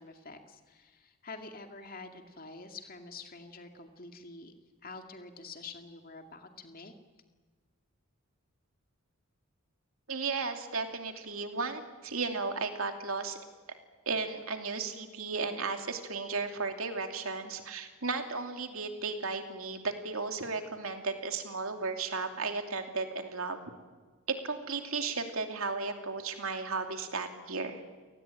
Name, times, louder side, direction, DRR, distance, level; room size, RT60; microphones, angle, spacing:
voice 1, 0.0-4.5 4.8-6.9, left 3 dB, 40° left, 5 dB, 2.4 m, -47 dB
voice 2, 10.1-13.4 14.1-23.6 24.3-27.8, right 4 dB, 75° right, 5 dB, 2.8 m, -34 dB
29.5 x 19.0 x 9.0 m, 1.4 s
head